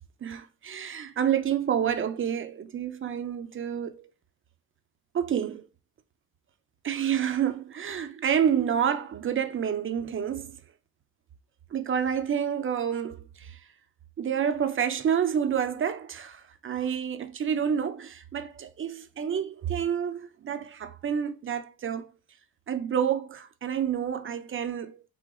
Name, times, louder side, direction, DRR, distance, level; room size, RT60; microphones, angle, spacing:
voice 1, 0.2-4.1 5.1-5.7 6.8-10.5 11.7-13.6 14.2-22.1 22.7-25.0, right 8 dB, 35° right, 0.4 m, -29 dB
4.8 x 3.7 x 2.3 m
wide cardioid pair, 180°, 38 cm